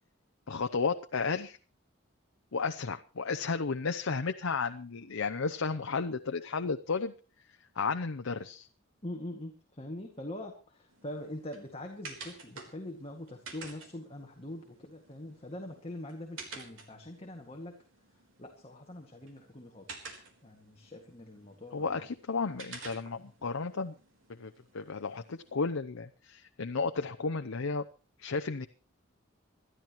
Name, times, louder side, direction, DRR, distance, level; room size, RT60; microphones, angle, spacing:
voice 1, 0.5-1.6 2.5-7.1 7.8-8.7 21.7-23.9 24.4-27.9 28.2-28.7, left 4 dB, 90° left, 7 dB, 0.7 m, -33 dB
voice 2, 9.0-17.8 18.4-22.0, left 1 dB, 30° left, 1 dB, 2.1 m, -43 dB
sound 1, 10.9-25.5, right 4 dB, 75° right, 3.8 m, -51 dB
27.0 x 12.5 x 3.1 m, 0.35 s
head